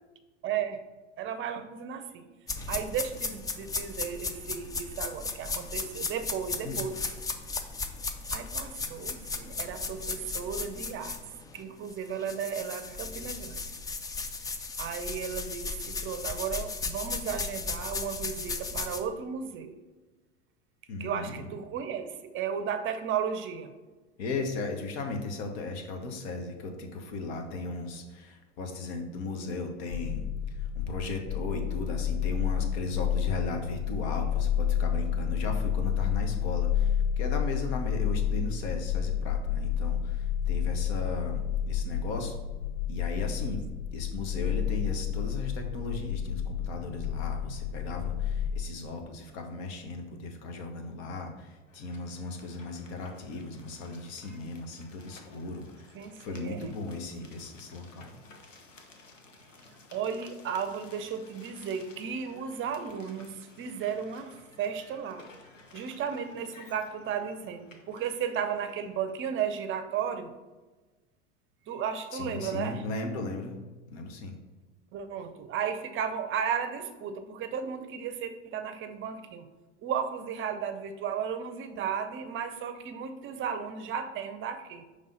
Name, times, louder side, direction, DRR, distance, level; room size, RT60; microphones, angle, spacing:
voice 1, 0.4-0.8 1.2-2.2 2.7-7.0 8.3-11.2 11.5-13.6 14.8-19.7 21.0-23.7 55.9-56.7 59.9-65.3 65.7-70.3 71.7-72.8 74.9-79.5 79.8-84.9, right 7 dB, 35° right, 9 dB, 0.6 m, -34 dB
sound 1, 2.5-11.6 11.9-19.0, left 4 dB, 10° left, 0.3 m, -36 dB
voice 2, 20.9-21.5 24.2-42.4 42.9-43.6 43.9-58.1 72.1-73.6 73.9-74.3, left 3 dB, 60° left, 4 dB, 1.2 m, -36 dB
sound 2, 29.9-48.6, left 9 dB, 75° left, 0.5 m, -30 dB
sound 3, 51.7-68.9, left 3 dB, 90° left, 0.9 m, -55 dB
5.4 x 3.4 x 5.2 m, 1.2 s
hypercardioid pair, 85°, 37 cm